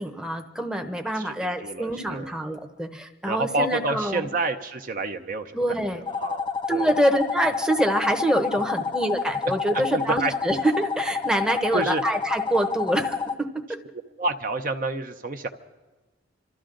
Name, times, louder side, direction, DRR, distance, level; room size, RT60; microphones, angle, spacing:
voice 1, 0.0-4.3 5.5-6.0 6.7-13.8, right 1 dB, 5° right, 4 dB, 0.8 m, -26 dB
voice 2, 1.2-2.3 3.3-6.9 9.9-10.3 11.7-12.0 14.2-15.5, right 3 dB, 45° right, 6 dB, 0.7 m, -29 dB
sound 1, 6.1-13.3, left 5 dB, 25° left, 0.4 m, -29 dB
27.5 x 13.0 x 3.8 m, 1.2 s
head